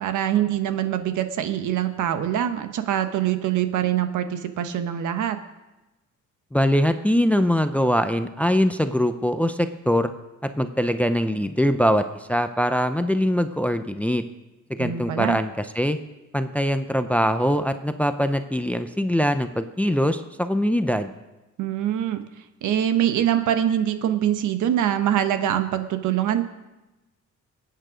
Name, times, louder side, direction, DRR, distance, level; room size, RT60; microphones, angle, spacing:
voice 1, 0.0-5.4 14.8-15.4 21.6-22.3 22.6-26.4, right 10 dB, 75° right, 8 dB, 1.3 m, -24 dB
voice 2, 6.5-10.1 10.6-14.2 14.7-16.0 16.3-21.1, equal, 5° left, 9 dB, 0.5 m, -22 dB
21.0 x 9.1 x 5.0 m, 1.0 s
cardioid pair, 150°, 31 cm